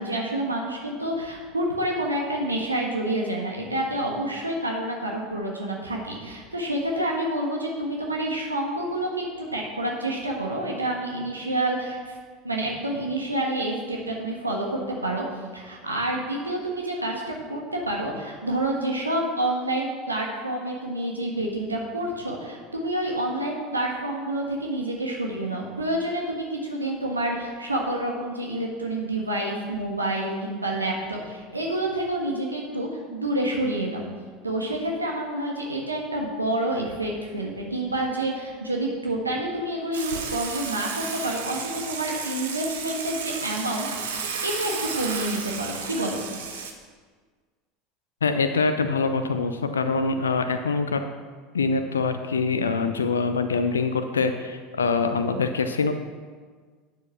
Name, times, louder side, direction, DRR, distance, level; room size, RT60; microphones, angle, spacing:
voice 1, 0.0-12.1 12.4-15.2 15.5-34.0 34.4-46.2, right 1 dB, 85° right, -1 dB, 1.4 m, -28 dB
Water / Water tap faucet / Sink (filling or washing), 39.9-46.7, right 6 dB, 70° right, 1.2 m, -33 dB
voice 2, 48.2-51.0 51.5-55.9, left 4 dB, 75° left, 8 dB, 0.6 m, -24 dB
9.5 x 7.1 x 5.8 m, 1.5 s
figure-of-eight pair, 75°, 0 cm